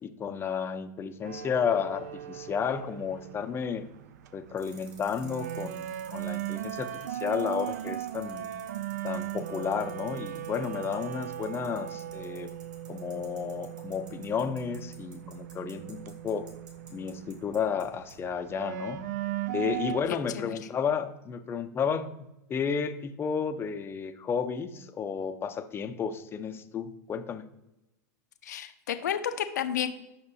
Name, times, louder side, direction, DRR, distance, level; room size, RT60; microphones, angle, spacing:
voice 1, 0.0-3.9 4.3-5.9 6.1-8.5 9.0-12.5 12.9-16.5 16.9-19.0 19.5-27.4, left 6 dB, 25° left, 9 dB, 0.6 m, -32 dB
sound 1, 1.2-20.1, right 12 dB, 65° right, 0.4 m, -38 dB
sound 2, 4.6-17.8 18.1-18.2, right 5 dB, 45° right, 2.6 m, -53 dB
voice 2, 28.4-29.9, left 9 dB, 75° left, 8 dB, 0.7 m, -31 dB
8.7 x 5.9 x 2.8 m, 0.93 s
hypercardioid pair, 95°, 10 cm